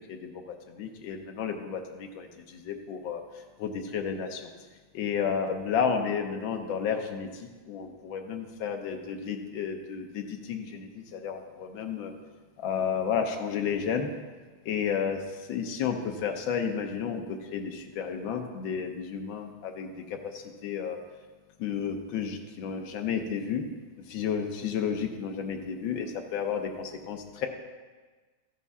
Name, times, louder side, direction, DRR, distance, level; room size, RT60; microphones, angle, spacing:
voice 1, 0.1-3.2 3.6-4.4 4.9-12.1 12.6-14.1 14.7-15.2 15.5-21.0 21.6-23.6 24.1-27.5, left 7 dB, 75° left, 4 dB, 1.7 m, -32 dB
13.5 x 6.1 x 5.5 m, 1.4 s
omnidirectional pair, 2.2 m